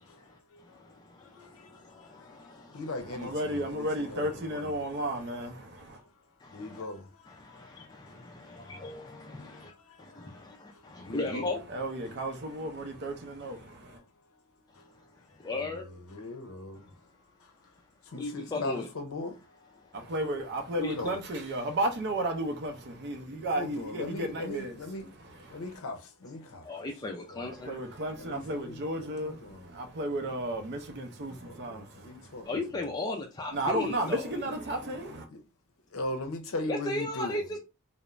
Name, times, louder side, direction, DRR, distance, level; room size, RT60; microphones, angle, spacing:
voice 1, 0.1-4.7 5.8-11.5 12.8-12.9 13.4-14.1 14.7-17.7 18.0-20.0 20.9-21.1 23.5-25.1 25.4-27.5 28.2-29.7 31.2-32.6 32.8-32.9 34.9-35.0 35.3-35.4 35.9-37.4, left 2 dB, 65° left, 0.6 m, -41 dB
voice 2, 3.1-6.0 11.7-14.0 19.9-24.7 25.5-25.6 27.6-32.5 33.5-35.3, right 1 dB, 50° right, 0.5 m, -33 dB
voice 3, 8.7-9.0 11.1-11.6 15.4-15.8 18.2-18.9 20.8-21.2 26.7-27.8 32.5-34.4 36.7-37.6, left 2 dB, 15° left, 0.3 m, -34 dB
2.4 x 2.0 x 3.1 m
head